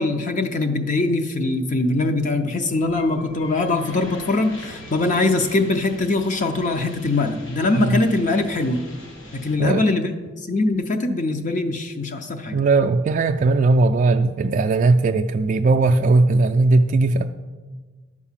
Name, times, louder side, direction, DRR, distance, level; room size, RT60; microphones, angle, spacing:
voice 1, 0.0-8.8 9.3-10.1 10.5-12.6, left 2 dB, 40° left, 6 dB, 0.6 m, -22 dB
sound 1, 2.8-9.6, left 1 dB, 70° left, 1.6 m, -41 dB
voice 2, 12.5-17.2, right 3 dB, 40° right, 5 dB, 0.3 m, -18 dB
10.5 x 4.8 x 7.3 m, 1.4 s
head